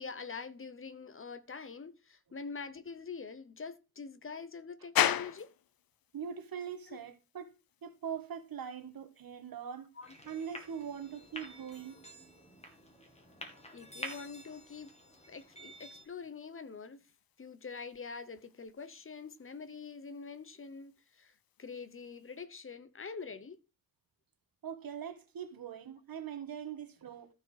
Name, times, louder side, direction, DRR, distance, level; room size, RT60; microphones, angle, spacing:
voice 1, 0.0-5.5 6.9-7.0 9.9-10.2 12.0-12.1 13.7-14.9 15.3-17.0 17.4-23.6, left 5 dB, 40° left, 0.8 m, -45 dB
sound 1, 5.0-22.4, left 11 dB, 80° left, 0.6 m, -42 dB
voice 2, 6.1-7.5 7.8-9.9 10.3-12.0 24.6-27.3, right 8 dB, 80° right, 1.5 m, -42 dB
sound 2, 10.0-16.0, equal, 20° left, 2.2 m, -49 dB
13.5 x 4.7 x 4.8 m
wide cardioid pair, 125°, 34 cm